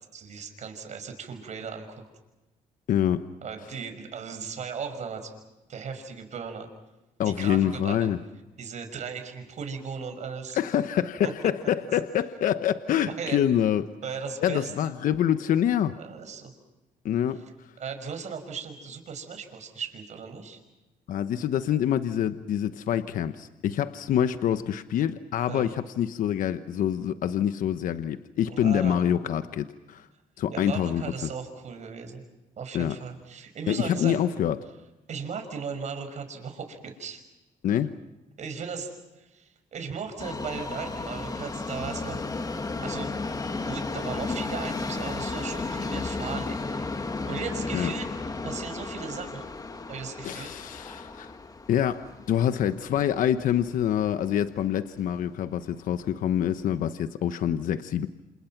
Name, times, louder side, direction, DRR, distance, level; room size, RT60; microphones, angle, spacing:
voice 1, 0.1-2.0 3.4-5.3 5.7-6.7 7.2-8.1 8.6-10.6 11.2-11.3 13.0-13.4 14.0-14.7 16.0-16.5 17.8-20.6 25.5-25.7 28.5-29.1 30.5-32.2 32.6-34.2 35.1-37.2 38.4-42.2 42.8-43.1 43.7-48.1 48.4-49.5 49.9-50.5, right 6 dB, 55° right, 7 dB, 5.8 m, -37 dB
voice 2, 2.9-3.2 7.2-8.2 10.5-13.9 14.4-16.0 17.0-17.4 21.1-30.1 30.4-31.0 32.7-33.0 33.7-34.6 37.6-37.9 47.7-47.9 50.2-51.3 51.7-58.1, left 10 dB, 70° left, 10 dB, 1.1 m, -26 dB
Subway metro underground, 40.2-54.3 54.6-54.7 55.5-55.6 55.9-56.0 56.7-56.8, left 3 dB, 25° left, 2.0 m, -34 dB
28.5 x 28.0 x 6.0 m, 1.0 s
cardioid pair, 85°, 14 cm